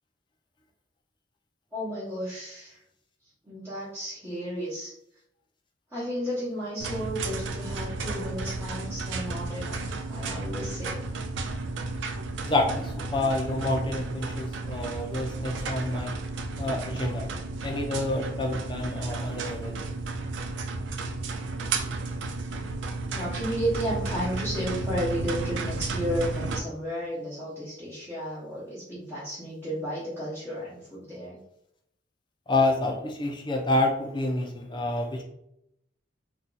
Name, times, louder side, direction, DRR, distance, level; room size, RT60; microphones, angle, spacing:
voice 1, 1.7-2.8 3.4-4.9 5.9-11.0 23.1-31.4, equal, 15° right, -13 dB, 1.1 m, -33 dB
sound 1, 6.8-26.6, right 3 dB, 75° right, 0.4 m, -33 dB
voice 2, 12.4-16.1 16.6-17.3 17.6-19.9 32.5-35.2, left 2 dB, 25° left, 2 dB, 0.6 m, -28 dB
2.8 x 2.3 x 3.9 m, 0.78 s
head